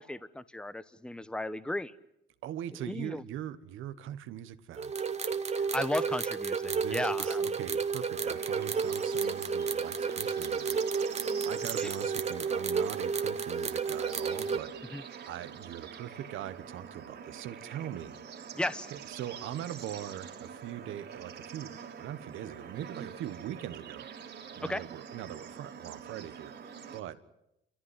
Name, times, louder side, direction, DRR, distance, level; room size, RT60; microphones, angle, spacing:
voice 1, 0.0-1.9 2.9-3.2 5.5-7.6 11.8-11.9 14.9-15.0 18.5-18.9 24.6-24.8, left 1 dB, 5° left, 16 dB, 0.9 m, -35 dB
voice 2, 2.4-4.9 6.6-14.7 15.3-18.1 18.9-21.7 22.0-24.1 24.6-26.5 26.9-27.2, right 11 dB, 85° right, 11 dB, 1.4 m, -41 dB
sound 1, 4.8-14.6, right 5 dB, 35° right, 1.5 m, -32 dB
Bird / Insect / Frog, 8.1-27.0, right 7 dB, 60° right, 3.0 m, -46 dB
29.5 x 14.5 x 9.9 m, 0.85 s
cardioid pair, 90°, 20 cm